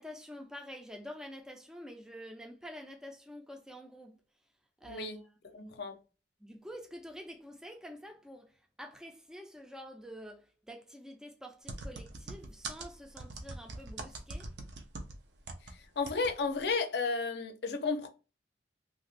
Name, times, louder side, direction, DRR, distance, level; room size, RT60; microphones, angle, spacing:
voice 1, 0.0-4.2 4.8-5.1 5.5-5.9 6.4-14.5, equal, 5° right, 0.4 m, -48 dB
voice 2, 4.8-5.2 5.5-6.0 15.6-18.1, left 4 dB, 60° left, 0.5 m, -33 dB
sound 1, 11.7-15.7 16.1-16.3 16.6-16.7, right 2 dB, 70° right, 0.6 m, -42 dB
2.8 x 2.5 x 3.2 m
head